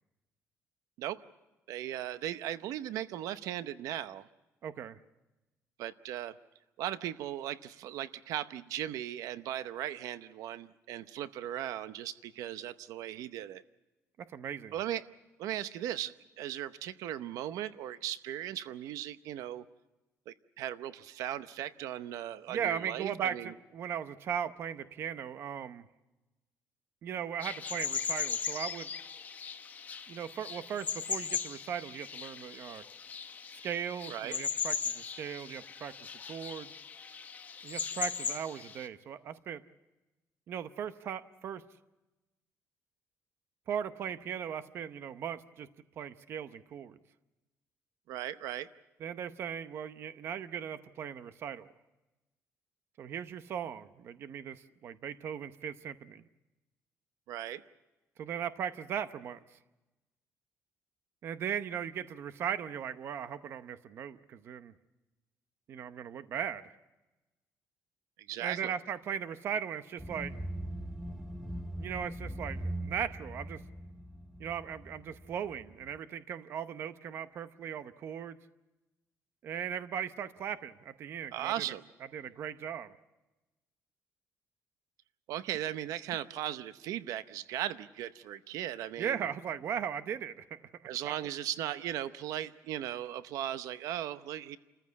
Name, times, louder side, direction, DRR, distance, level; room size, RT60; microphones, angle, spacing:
voice 1, 1.7-4.3 5.8-6.4 6.8-13.6 14.7-15.0 15.4-19.6 20.3-23.5 34.1-34.4 48.1-48.7 57.3-57.6 68.3-68.7 81.3-81.8 85.3-89.3 90.9-94.6, right 12 dB, 90° right, 13 dB, 0.8 m, -37 dB
voice 2, 4.6-5.0 14.3-14.7 22.5-25.8 27.0-28.9 30.1-32.8 33.6-35.9 36.3-36.7 37.6-39.6 40.5-41.6 43.7-45.7 46.0-47.0 49.0-51.7 53.0-56.2 58.2-59.6 61.2-64.7 65.7-66.8 68.4-70.3 71.8-73.6 74.4-78.4 79.4-81.6 82.1-83.0 89.0-90.6 91.1-91.2, right 8 dB, 45° right, 12 dB, 0.7 m, -38 dB
sound 1, 27.4-38.9, left 6 dB, 30° left, 0.9 m, -38 dB
sound 2, 70.0-76.0, right 1 dB, 5° right, 0.7 m, -41 dB
29.0 x 14.5 x 8.4 m, 1.1 s
cardioid pair, 180°, 6 cm